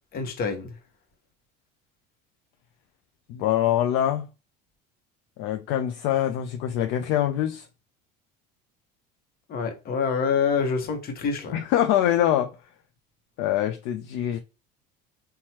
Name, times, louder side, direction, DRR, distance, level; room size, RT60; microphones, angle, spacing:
voice 1, 0.1-0.7 9.5-11.6, left 5 dB, 45° left, 0.9 m, -26 dB
voice 2, 3.3-4.3 5.4-7.7 11.5-12.5 13.4-14.4, left 11 dB, 65° left, 0.4 m, -24 dB
3.0 x 2.2 x 2.7 m
supercardioid pair, 100°, 21 cm